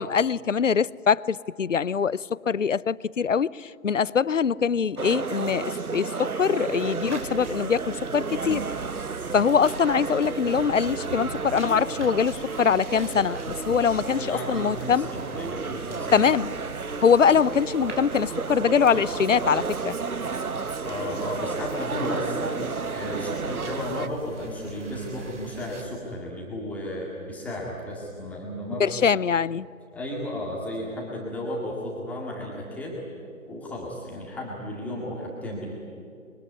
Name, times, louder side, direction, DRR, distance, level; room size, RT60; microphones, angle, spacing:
voice 1, 0.0-8.6 9.3-15.1 16.1-16.5 17.0-20.0 28.8-29.7, left 6 dB, 60° left, 0.7 m, -23 dB
sound 1, 5.0-24.1, right 4 dB, 85° right, 0.9 m, -32 dB
sound 2, 7.0-25.8, right 3 dB, 55° right, 3.3 m, -42 dB
voice 2, 14.1-16.3 20.8-22.6 22.9-29.0 29.9-33.0 33.5-35.7, left 1 dB, 5° left, 2.0 m, -34 dB
26.0 x 23.0 x 9.3 m
figure-of-eight pair, 145°, 42 cm